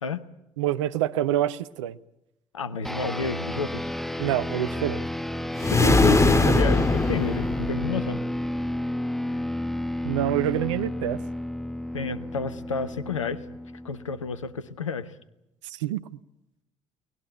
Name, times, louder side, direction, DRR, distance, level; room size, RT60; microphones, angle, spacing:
voice 1, 0.6-2.0 4.2-5.0 10.0-11.2 15.6-16.0, right 12 dB, 75° right, 16 dB, 0.8 m, -26 dB
voice 2, 2.5-3.9 5.7-8.2 11.9-13.4 13.8-15.1, left 5 dB, 85° left, 13 dB, 1.0 m, -30 dB
sound 1, 2.8-14.5, left 1 dB, ahead, 1.4 m, -32 dB
sound 2, 5.6-8.2, left 2 dB, 20° left, 2.6 m, -21 dB
23.5 x 19.0 x 8.1 m, 0.85 s
figure-of-eight pair, 50°, 16 cm